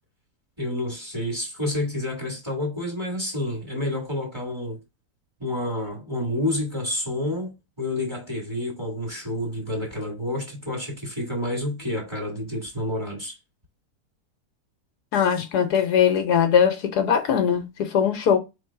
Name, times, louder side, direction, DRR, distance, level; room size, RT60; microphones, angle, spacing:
voice 1, 0.6-4.8 5.4-13.4, left 1 dB, 15° right, 1.8 m, -29 dB
voice 2, 15.1-18.4, left 8 dB, 75° left, 1.3 m, -21 dB
3.7 x 3.1 x 4.6 m
omnidirectional pair, 1.8 m